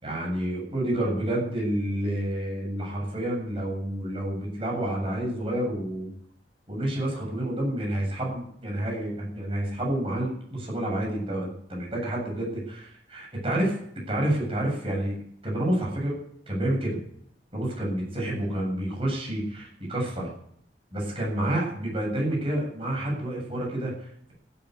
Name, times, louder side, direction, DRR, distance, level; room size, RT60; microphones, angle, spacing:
voice 1, 0.0-6.1 6.7-13.8 14.1-15.2 15.4-16.2 16.5-17.0 17.5-20.3 20.9-24.3, right 1 dB, 30° right, -2 dB, 7.7 m, -29 dB
15.0 x 9.3 x 9.7 m, 0.67 s
head